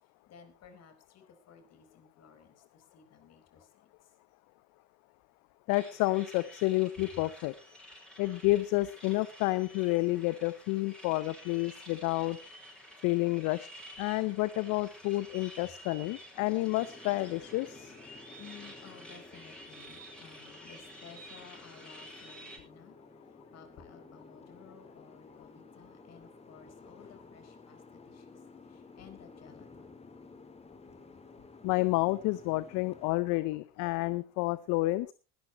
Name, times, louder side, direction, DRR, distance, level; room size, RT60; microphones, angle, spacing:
voice 1, 0.0-4.2 15.3-15.4 15.8-15.9 17.7-30.0, left 7 dB, 50° left, 4.3 m, -56 dB
voice 2, 5.7-7.5 8.2-12.4 13.0-13.7 14.0-17.9 31.6-35.1, left 20 dB, 65° left, 0.8 m, -30 dB
sound 1, 5.7-22.6, equal, 5° left, 6.2 m, -51 dB
Boat Water vehicle, 16.4-33.1, left 3 dB, 20° left, 2.3 m, -54 dB
20.5 x 12.5 x 3.1 m
hypercardioid pair, 75°, 33 cm